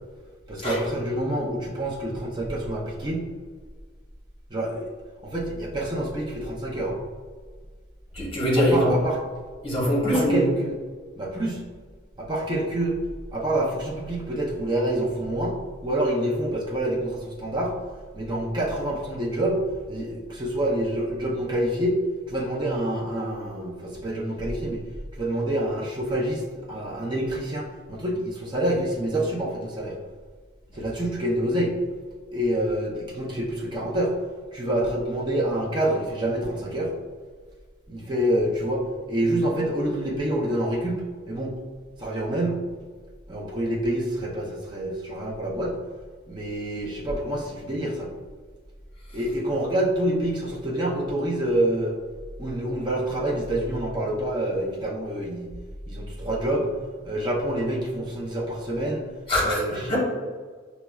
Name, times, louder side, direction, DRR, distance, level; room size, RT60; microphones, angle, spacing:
voice 1, 0.5-3.3 4.5-4.9 5.2-7.0 8.6-9.2 10.1-10.7 11.2-11.6 12.2-13.0 13.3-15.6 15.8-17.7 18.1-19.6 19.9-22.0 22.3-24.8 25.2-26.4 26.7-30.0 30.7-31.7 32.3-34.1 34.5-36.9 37.9-41.5 42.0-42.6 43.3-45.8 46.3-48.1 49.1-51.9 52.4-55.5 55.9-56.7 57.0-59.1 59.4-60.0, right 1 dB, 20° right, -4 dB, 0.5 m, -27 dB
voice 2, 8.1-8.9 9.6-10.4 59.3-60.0, equal, 25° left, -5 dB, 0.9 m, -22 dB
5.6 x 2.0 x 2.3 m, 1.5 s
head